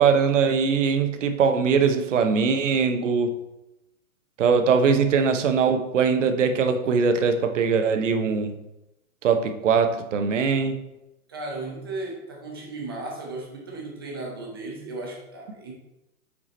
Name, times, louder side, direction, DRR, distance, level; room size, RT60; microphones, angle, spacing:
voice 1, 0.0-3.4 4.4-8.6 9.2-10.8, right 5 dB, 55° right, 7 dB, 0.8 m, -21 dB
voice 2, 11.3-15.7, right 2 dB, 15° right, -1 dB, 0.5 m, -35 dB
5.1 x 4.8 x 4.1 m, 0.92 s
hypercardioid pair, 160°, 45 cm